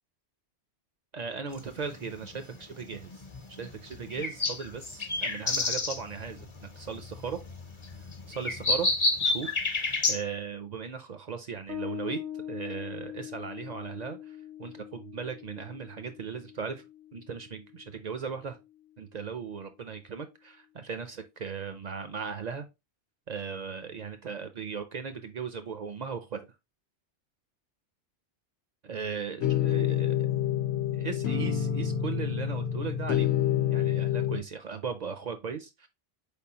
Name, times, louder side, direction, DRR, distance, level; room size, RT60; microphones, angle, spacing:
voice 1, 1.1-7.4 8.3-8.9 9.2-12.2 12.5-16.8 17.1-18.6 19.0-22.7 23.3-26.4 28.8-30.1 30.9-33.3 33.7-35.9, right 6 dB, 60° right, 0.4 m, -37 dB
sound 1, 1.5-10.2, left 3 dB, 35° left, 0.6 m, -31 dB
Bass guitar, 11.7-18.8, left 10 dB, 75° right, 0.9 m, -43 dB
sound 2, 29.4-34.4, left 10 dB, 75° left, 0.9 m, -27 dB
4.3 x 3.6 x 2.7 m
omnidirectional pair, 1.1 m